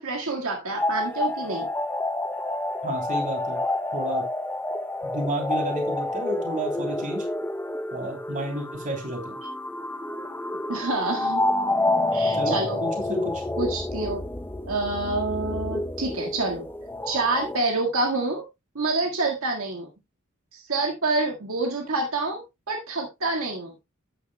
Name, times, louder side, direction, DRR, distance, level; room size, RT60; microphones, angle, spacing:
voice 1, 0.0-1.7 10.7-11.4 12.1-12.8 13.6-14.2 14.7-16.7 17.1-18.4 18.8-19.9 20.5-23.7, right 3 dB, 70° right, 1 dB, 1.8 m, -27 dB
sound 1, 0.8-17.6, left 2 dB, 10° left, 0.6 m, -28 dB
voice 2, 2.8-3.6 3.9-4.2 5.0-7.2 7.9-9.4 12.3-12.5 12.8-13.4, right 1 dB, 35° right, 3 dB, 3.1 m, -31 dB
12.5 x 9.2 x 2.2 m, 0.22 s
head